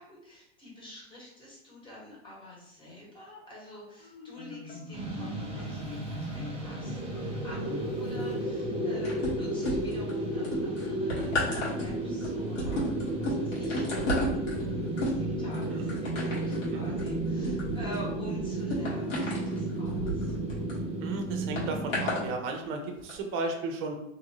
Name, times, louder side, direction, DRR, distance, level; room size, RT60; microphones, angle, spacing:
voice 1, 0.0-12.8 13.2-14.1 14.5-20.4, equal, 15° left, -6 dB, 1.2 m, -48 dB
Marimba xylophone, 4.0-9.1, left 3 dB, 60° left, 0.8 m, -43 dB
sound 1, 4.9-22.3, right 1 dB, 15° right, 1.0 m, -33 dB
sound 2, 9.0-10.1 10.4-20.8 21.6-22.2 23.0-23.1, left 1 dB, 85° left, 1.5 m, -33 dB
voice 2, 21.0-24.0, right 3 dB, 35° right, 4 dB, 0.6 m, -35 dB
2.7 x 2.6 x 2.9 m, 0.84 s
hypercardioid pair, 110°, 37 cm